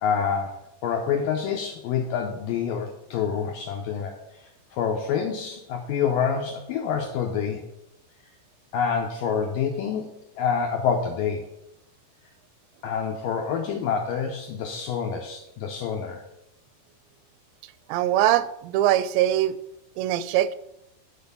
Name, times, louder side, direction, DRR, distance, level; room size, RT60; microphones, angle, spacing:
voice 1, 0.0-7.6 8.7-11.5 12.8-16.2, left 7 dB, 80° left, 2 dB, 2.0 m, -27 dB
voice 2, 17.9-19.6 20.0-20.6, right 12 dB, 85° right, 16 dB, 2.7 m, -22 dB
10.5 x 4.3 x 6.8 m, 0.83 s
omnidirectional pair, 5.0 m